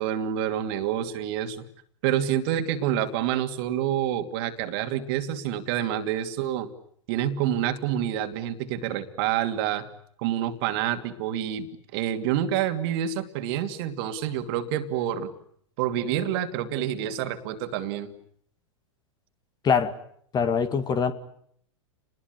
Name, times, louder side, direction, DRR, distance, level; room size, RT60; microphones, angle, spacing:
voice 1, 0.0-1.6 2.0-6.7 7.1-9.9 10.2-11.7 11.9-15.3 15.8-18.1, right 10 dB, 50° right, 8 dB, 2.7 m, -27 dB
voice 2, 20.3-21.1, left 6 dB, 25° left, 11 dB, 2.2 m, -23 dB
29.5 x 21.0 x 9.7 m, 0.67 s
hypercardioid pair, 100°, 16 cm